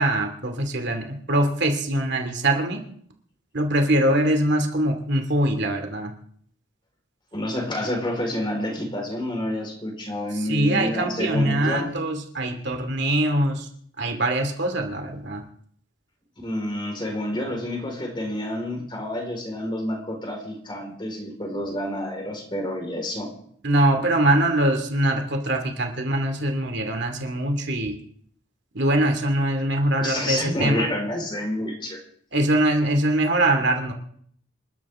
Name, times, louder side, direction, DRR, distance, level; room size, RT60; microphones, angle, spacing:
voice 1, 0.0-2.8 3.5-6.1 10.3-13.7 14.0-15.4 23.6-28.0 28.7-30.9 32.3-33.9, right 1 dB, 60° right, 5 dB, 2.5 m, -23 dB
voice 2, 7.3-12.0 16.4-23.3 30.0-32.0, left 1 dB, 25° left, 1 dB, 4.5 m, -29 dB
28.0 x 12.5 x 3.7 m, 0.62 s
head